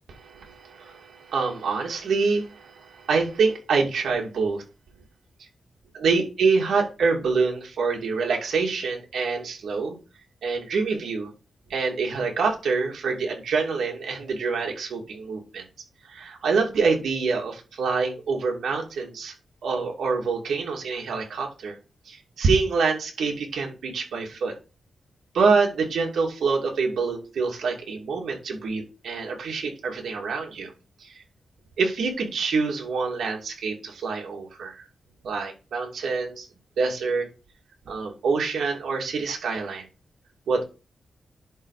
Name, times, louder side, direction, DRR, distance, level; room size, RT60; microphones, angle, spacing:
voice 1, 0.2-4.6 5.9-10.0 10.4-11.3 11.7-15.6 16.1-19.3 19.6-21.8 22.1-24.5 25.3-30.7 31.0-31.2 31.8-34.8 35.2-36.5 36.8-37.3 37.8-39.8 40.5-40.6, right 4 dB, 85° right, 0 dB, 2.6 m, -26 dB
11.0 x 4.0 x 4.9 m, 0.32 s
wide cardioid pair, 135°, 0 cm